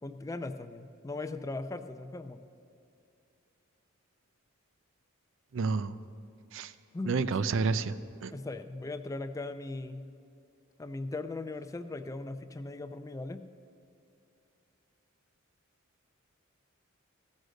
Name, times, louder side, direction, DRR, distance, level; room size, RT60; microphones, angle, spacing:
voice 1, 0.0-2.4 6.9-7.4 8.3-10.1 10.8-13.4, left 2 dB, 15° left, 10 dB, 0.3 m, -39 dB
voice 2, 5.5-6.0 6.5-6.7 7.1-7.9 8.2-8.3, right 4 dB, 60° right, 13 dB, 0.4 m, -29 dB
15.5 x 6.4 x 6.4 m, 2.5 s
head